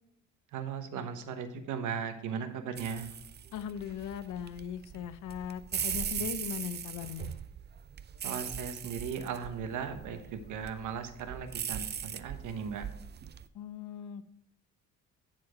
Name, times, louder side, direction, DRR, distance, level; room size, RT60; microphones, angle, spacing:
voice 1, 0.5-3.1 6.2-6.3 8.2-12.8, right 6 dB, 85° right, 8 dB, 1.1 m, -37 dB
sound 1, 2.7-13.4, right 8 dB, 35° right, 0.5 m, -40 dB
voice 2, 3.5-7.3 13.5-14.3, left 9 dB, 80° left, 13 dB, 0.6 m, -39 dB
10.5 x 4.4 x 4.9 m, 0.78 s
cardioid pair, 90°, 30 cm